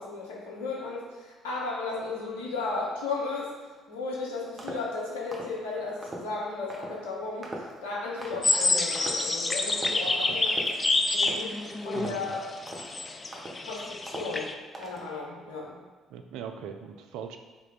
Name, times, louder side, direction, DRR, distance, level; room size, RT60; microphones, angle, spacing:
voice 1, 0.0-3.5 3.9-10.5 11.1-11.5 11.8-12.5 13.7-14.5 14.8-15.7, left 3 dB, 75° left, -4 dB, 0.8 m, -35 dB
sound 1, 4.6-4.9 5.3-5.6 6.0-6.3 6.7-7.0 7.4-7.8 8.2-8.5 9.0-9.3 9.7-10.0 10.5-10.8 11.2-11.5 11.9-12.3 12.7-12.9 13.3-13.7 14.1-14.4 14.7-15.1, right 2 dB, 25° right, 0.9 m, -40 dB
sound 2, 8.4-14.5, left 2 dB, 30° left, 0.4 m, -28 dB
voice 2, 10.0-10.4 11.9-12.4 16.1-17.4, right 7 dB, 65° right, 6 dB, 0.3 m, -41 dB
3.6 x 3.1 x 3.9 m, 1.3 s
figure-of-eight pair, 45°, 0 cm